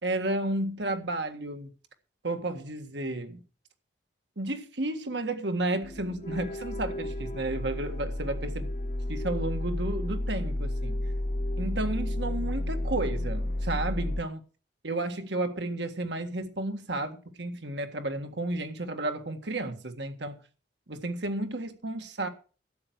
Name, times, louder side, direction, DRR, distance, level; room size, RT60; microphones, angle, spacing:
voice 1, 0.0-1.7 2.2-3.4 4.4-8.7 9.1-11.0 11.6-14.4 14.8-20.4 20.9-22.3, right 2 dB, 75° right, 1.7 m, -32 dB
sound 1, 5.8-14.2, left 1 dB, 40° left, 0.8 m, -32 dB
12.5 x 8.2 x 6.3 m
head